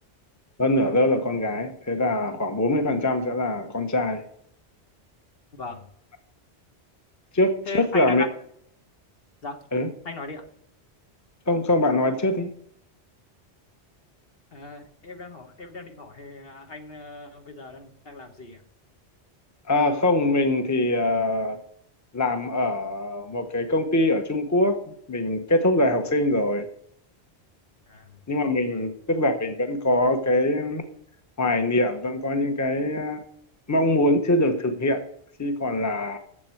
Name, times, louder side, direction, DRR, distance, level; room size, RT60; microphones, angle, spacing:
voice 1, 0.6-4.2 7.3-8.2 9.7-9.9 11.5-12.5 19.7-21.6 22.1-24.8 25.1-26.7 28.3-30.8 31.4-33.2 33.7-35.0 35.4-36.2, left 1 dB, 15° left, 6 dB, 1.0 m, -23 dB
voice 2, 7.7-8.2 9.4-9.6 10.0-10.4 14.5-18.6 27.9-28.2 28.7-28.8, left 2 dB, 60° left, 5 dB, 1.5 m, -37 dB
7.7 x 7.6 x 7.7 m, 0.68 s
omnidirectional pair, 1.1 m